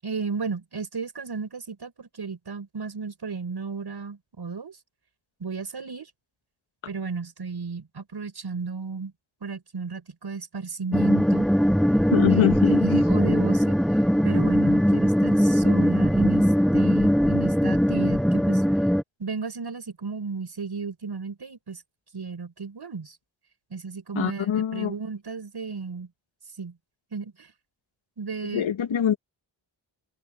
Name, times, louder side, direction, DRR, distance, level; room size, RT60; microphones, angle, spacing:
voice 1, 0.0-4.8 5.4-6.1 6.9-9.1 9.4-11.5 12.3-12.4 12.8-13.8 14.2-18.6 19.2-21.8 22.1-23.2 23.7-26.1 26.6-26.8 27.1-27.5 28.2-28.7, right 5 dB, 55° right, 6.8 m, -34 dB
sound 1, 10.9-19.0, equal, ahead, 0.8 m, -20 dB
voice 2, 12.1-13.0 24.1-24.9 28.5-29.2, left 9 dB, 90° left, 1.5 m, -24 dB
wide cardioid pair, 95°, 46 cm